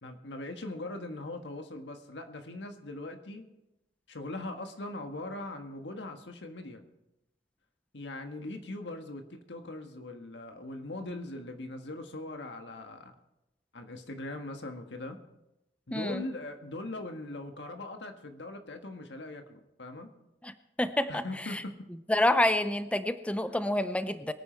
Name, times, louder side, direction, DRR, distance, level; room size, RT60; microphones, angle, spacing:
voice 1, 0.0-3.5 4.1-6.8 7.9-13.1 13.7-15.2 15.9-20.1 21.1-21.7, left 2 dB, 85° left, 6 dB, 1.6 m, -40 dB
voice 2, 15.9-16.2 20.4-21.6 22.1-24.3, left 1 dB, 5° left, 11 dB, 0.5 m, -28 dB
23.0 x 9.2 x 4.5 m, 0.91 s
head